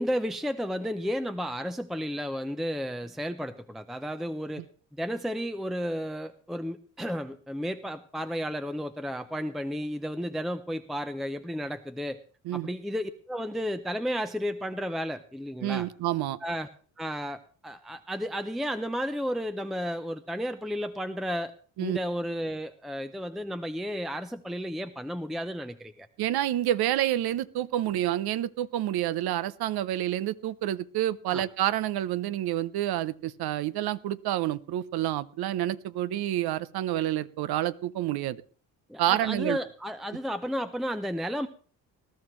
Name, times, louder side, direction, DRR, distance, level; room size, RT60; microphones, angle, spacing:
voice 1, 0.0-4.6 4.9-12.2 12.5-15.9 16.4-16.7 17.0-21.5 21.8-26.1 31.3-31.4 38.9-41.5, equal, ahead, 10 dB, 0.6 m, -33 dB
voice 2, 15.6-16.4 21.8-22.0 26.2-38.4 39.0-39.6, right 13 dB, 65° right, 17 dB, 0.7 m, -28 dB
20.0 x 12.5 x 3.1 m, 0.43 s
cardioid pair, 85°, 40 cm